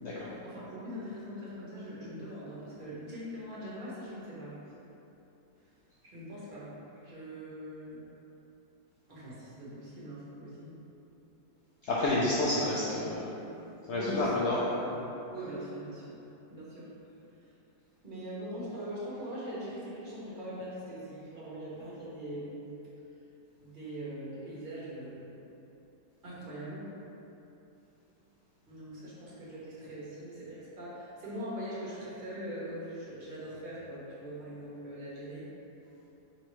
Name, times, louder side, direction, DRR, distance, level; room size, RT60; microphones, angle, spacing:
voice 1, 0.4-4.6 6.0-6.7 7.0-8.0 9.1-10.8 13.9-15.0 15.3-16.1 16.5-16.9 17.3-17.5 18.0-22.6 23.6-25.3 26.2-26.9 28.7-35.5, equal, 35° right, -9 dB, 1.0 m, -41 dB
voice 2, 11.8-13.4 13.9-14.6, left 2 dB, 80° left, -7 dB, 0.6 m, -29 dB
4.4 x 3.1 x 3.1 m, 3.0 s
omnidirectional pair, 1.7 m